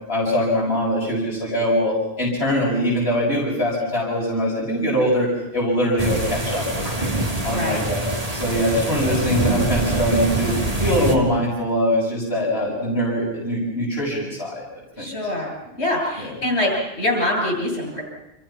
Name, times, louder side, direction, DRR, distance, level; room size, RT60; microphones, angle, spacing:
voice 1, 0.1-7.1 7.4-8.0 8.3-10.6 10.8-14.6 15.0-15.1 16.2-16.3, equal, 65° left, -5 dB, 6.9 m, -22 dB
sound 1, 6.0-11.2, right 2 dB, 35° right, 2.9 m, -24 dB
voice 2, 7.4-7.8 15.0-18.0, left 1 dB, 80° left, 0 dB, 8.2 m, -24 dB
30.0 x 27.0 x 5.9 m, 0.90 s
omnidirectional pair, 1.1 m